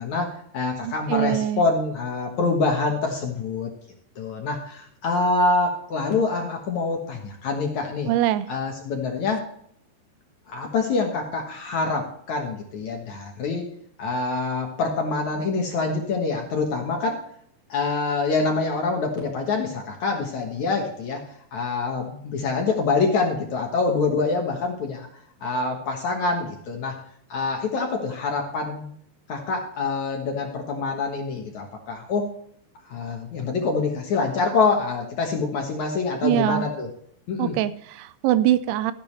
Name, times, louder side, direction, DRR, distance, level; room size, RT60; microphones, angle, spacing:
voice 1, 0.0-3.7 4.2-8.1 8.5-9.4 10.5-13.7 14.0-17.2 17.7-21.2 21.5-25.1 25.4-27.0 27.3-28.9 29.3-32.3 32.9-36.9 37.3-37.6, left 3 dB, 60° left, 2 dB, 2.3 m, -25 dB
voice 2, 0.8-1.6 8.1-8.5 36.2-36.7 37.4-38.9, right 13 dB, 90° right, 14 dB, 2.6 m, -23 dB
14.0 x 10.5 x 3.3 m, 0.66 s
omnidirectional pair, 4.6 m